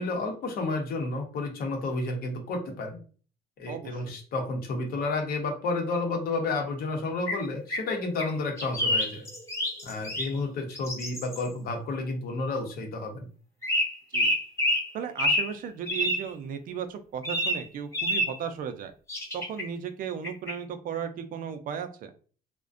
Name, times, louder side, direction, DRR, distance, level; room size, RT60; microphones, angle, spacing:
voice 1, 0.0-3.0 3.6-9.3 9.8-13.3, left 3 dB, 60° left, 2 dB, 0.8 m, -31 dB
voice 2, 3.7-4.2 14.1-14.3 14.9-18.9 19.3-22.1, right 7 dB, 55° right, 8 dB, 0.4 m, -35 dB
sound 1, 7.3-8.3 8.6-10.4 10.7-11.5 13.6-14.9 15.2-15.5 15.9-16.3 17.2-17.6 17.9-18.4 19.1-19.6 20.2-20.5, equal, 15° left, 0.7 m, -28 dB
2.4 x 2.1 x 2.4 m, 0.40 s
cardioid pair, 110°, 17 cm